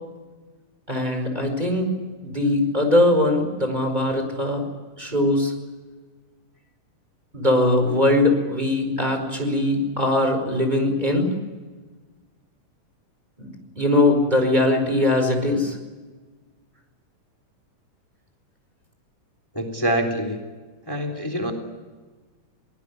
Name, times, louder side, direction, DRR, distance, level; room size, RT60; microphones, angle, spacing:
voice 1, 0.9-1.9 2.2-4.6 5.0-5.5 7.3-11.3 13.4-15.8, left 1 dB, 10° right, 5 dB, 4.9 m, -21 dB
voice 2, 19.5-20.4 20.9-21.5, right 1 dB, 5° left, 4 dB, 3.1 m, -25 dB
23.5 x 20.0 x 9.8 m, 1.3 s
omnidirectional pair, 3.7 m